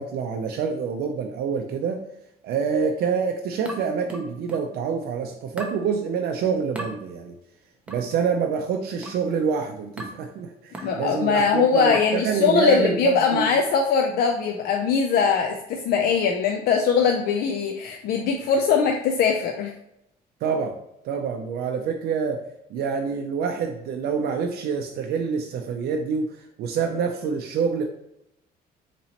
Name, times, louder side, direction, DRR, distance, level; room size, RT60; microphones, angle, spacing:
voice 1, 0.0-2.0 2.4-7.3 7.9-13.6 20.4-20.8 21.0-22.4 22.7-27.8, right 6 dB, 65° right, 3 dB, 0.5 m, -26 dB
sound 1, 3.7-4.8 5.6-5.9 6.8-7.0 7.9-8.1 9.0-9.3 10.0-10.3 10.7-11.0 11.9-12.2, right 1 dB, 5° right, 0.6 m, -38 dB
voice 2, 10.8-19.7, left 6 dB, 65° left, 2 dB, 0.5 m, -21 dB
4.0 x 3.0 x 2.8 m, 0.80 s
cardioid pair, 110°, 17 cm